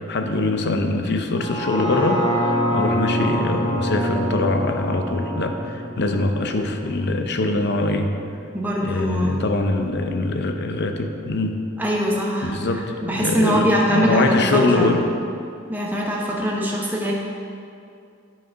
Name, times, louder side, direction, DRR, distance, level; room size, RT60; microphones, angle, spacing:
voice 1, 0.1-8.1 8.8-11.6 12.4-12.8 13.2-15.1 16.8-16.9, left 2 dB, 55° left, 5 dB, 0.6 m, -23 dB
sound 1, 1.4-7.5 7.9-8.0, equal, 25° left, 0.9 m, -25 dB
voice 2, 8.5-9.4 11.8-14.9 15.7-17.1, equal, 10° right, -4 dB, 0.8 m, -22 dB
9.1 x 4.8 x 5.1 m, 2.5 s
head